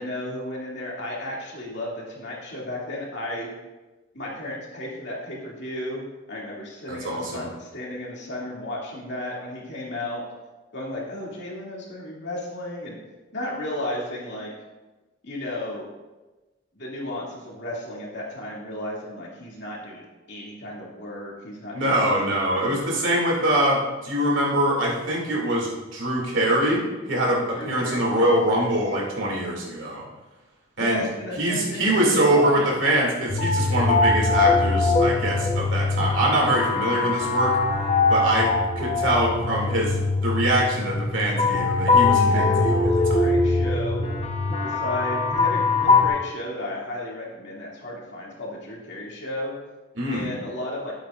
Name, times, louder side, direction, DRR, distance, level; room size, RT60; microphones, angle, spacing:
voice 1, 0.0-3.5 4.1-10.2 10.7-13.0 13.3-14.5 15.2-15.9 16.7-22.8 27.5-28.7 30.8-32.7 42.1-44.1 44.6-49.5 50.1-50.9, left 1 dB, 60° left, -4 dB, 2.5 m, -34 dB
voice 2, 6.9-7.5 21.7-30.0 30.8-31.0 31.4-37.6 38.1-43.3 49.9-50.3, right 1 dB, 80° right, -3 dB, 2.6 m, -24 dB
sound 1, 33.3-46.1, left 3 dB, 35° left, 0.9 m, -22 dB
12.0 x 8.2 x 2.5 m, 1.1 s
head